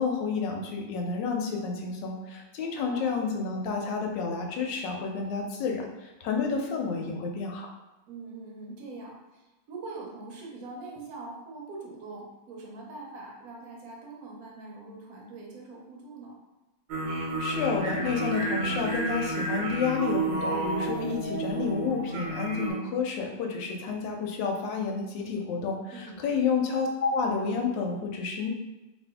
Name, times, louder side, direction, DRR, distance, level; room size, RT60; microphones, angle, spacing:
voice 1, 0.0-7.7 17.4-28.5, left 5 dB, 85° left, 2 dB, 1.3 m, -30 dB
voice 2, 2.7-3.2 7.0-7.3 8.1-16.4 25.9-26.3, right 3 dB, 65° right, -2 dB, 1.0 m, -43 dB
sound 1, 16.9-22.7, right 2 dB, 85° right, 1.4 m, -31 dB
3.0 x 2.5 x 3.4 m, 1.0 s
omnidirectional pair, 1.9 m